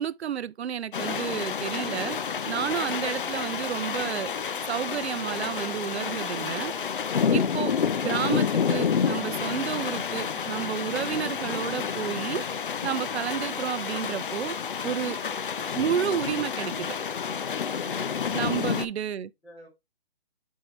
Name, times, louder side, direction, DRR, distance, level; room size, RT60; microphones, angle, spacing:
voice 1, 0.0-2.2 2.5-4.3 4.7-6.7 7.3-7.7 8.0-12.4 12.8-14.5 14.8-15.2 15.7-17.0 18.3-19.3, right 9 dB, 85° right, 0.5 m, -31 dB
sound 1, 0.9-18.9, left 6 dB, 55° left, 0.5 m, -29 dB
voice 2, 19.4-19.7, equal, 5° left, 1.8 m, -53 dB
7.2 x 4.6 x 3.0 m
hypercardioid pair, 170°, 32 cm